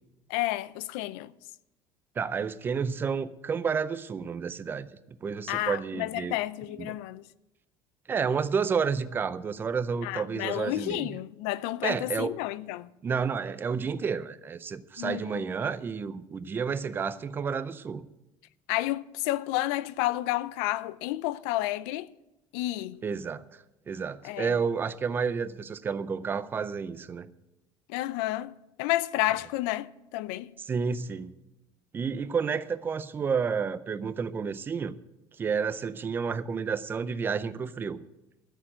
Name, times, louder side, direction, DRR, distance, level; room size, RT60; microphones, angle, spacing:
voice 1, 0.3-1.3 5.5-7.2 10.0-12.9 15.0-15.3 18.7-22.1 22.5-23.0 24.2-24.6 27.9-30.5, left 16 dB, 85° left, 0.5 m, -31 dB
voice 2, 2.2-4.9 5.2-6.3 6.8-7.0 8.1-11.2 11.8-12.3 13.0-18.1 23.0-23.4 23.9-27.3 30.7-31.3 31.9-35.0 35.4-38.0, right 6 dB, 20° right, 0.5 m, -30 dB
13.0 x 6.8 x 8.7 m
cardioid pair, 165°, 10 cm